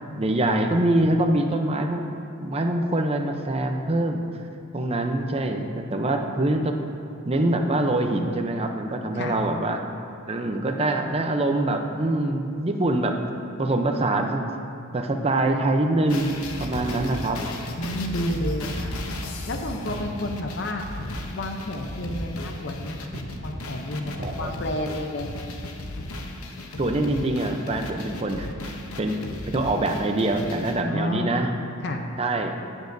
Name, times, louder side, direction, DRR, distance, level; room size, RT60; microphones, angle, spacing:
voice 1, 0.1-2.1 2.4-4.2 4.7-6.8 7.2-9.8 10.3-13.2 13.6-14.5 14.9-16.3 16.6-17.5 24.2-24.5 26.8-31.5 32.2-32.6, right 1 dB, 25° right, 4 dB, 0.6 m, -24 dB
sound 1, 16.1-30.8, left 2 dB, 85° left, 0.8 m, -36 dB
voice 2, 17.8-18.9 19.5-20.9 21.3-25.3 30.9-31.3 31.8-32.0, left 1 dB, 50° left, 4 dB, 0.7 m, -30 dB
sound 2, 18.8-19.2 19.9-20.3 21.0-21.5 22.1-22.4 23.1-23.5 24.2-24.5 25.2-25.5, equal, 45° right, 1.1 m, -36 dB
15.5 x 7.2 x 2.6 m, 2.6 s
head